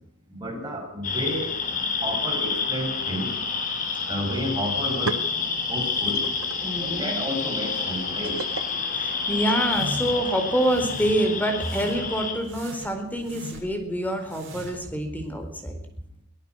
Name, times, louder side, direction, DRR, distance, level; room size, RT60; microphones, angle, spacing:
voice 1, 0.3-3.3 4.1-5.2 5.7-6.3 6.7-8.4, equal, 20° right, 1 dB, 7.6 m, -31 dB
sound 1, 1.0-12.3, left 5 dB, 40° left, 4.7 m, -28 dB
sound 2, 4.3-4.4 4.7-9.9, right 4 dB, 90° right, 1.8 m, -38 dB
voice 2, 6.6-7.2 8.7-15.7, right 1 dB, 10° left, 6 dB, 4.3 m, -26 dB
sound 3, 9.6-10.2 10.6-11.2 11.6-12.1 12.4-13.8 14.2-14.9, right 1 dB, 60° right, 7.4 m, -39 dB
24.0 x 18.0 x 6.3 m, 0.65 s
head